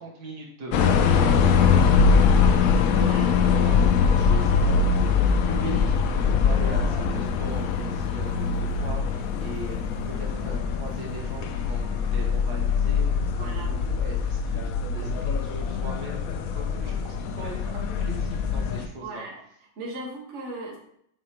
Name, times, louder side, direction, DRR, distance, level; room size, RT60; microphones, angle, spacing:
voice 1, 0.0-14.6 14.9-19.2, right 2 dB, 75° right, -1 dB, 1.8 m, -40 dB
sound 1, 0.7-18.9, left 6 dB, 70° left, 0.9 m, -23 dB
sound 2, 6.8-12.4, left 2 dB, 30° left, 1.2 m, -49 dB
voice 2, 13.4-13.7 19.0-19.4 19.8-20.8, right 2 dB, 45° right, -2 dB, 1.6 m, -37 dB
7.5 x 5.0 x 2.9 m, 0.71 s
omnidirectional pair, 1.7 m